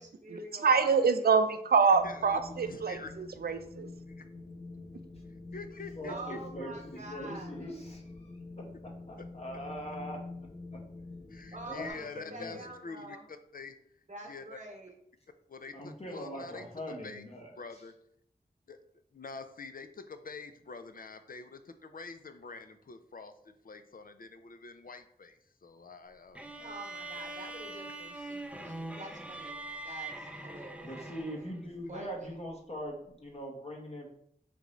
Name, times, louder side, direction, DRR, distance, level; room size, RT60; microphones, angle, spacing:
voice 1, 0.0-1.5 6.1-7.7 11.5-13.2 14.1-14.9 26.6-29.6 29.8-31.5 31.9-32.4, right 2 dB, 50° right, 1 dB, 1.0 m, -47 dB
voice 2, 0.6-3.9, right 5 dB, 75° right, 9 dB, 0.4 m, -26 dB
Wind, 1.9-11.9, left 3 dB, 85° left, 1.0 m, -47 dB
voice 3, 2.0-3.1 4.1-4.3 5.3-6.7 9.2-9.3 11.3-13.8 14.3-14.6 15.5-17.2 17.6-17.9 18.7-18.8 19.1-26.7, left 4 dB, 65° left, 9 dB, 0.4 m, -46 dB
voice 4, 5.9-8.3 8.6-8.7 9.1-10.2 11.7-12.6 15.7-17.5 30.8-34.1, equal, 40° left, -1 dB, 0.8 m, -41 dB
sound 1, 26.4-31.6, right 2 dB, 10° right, 0.4 m, -42 dB
3.8 x 3.5 x 3.0 m, 0.69 s
wide cardioid pair, 50°, 16 cm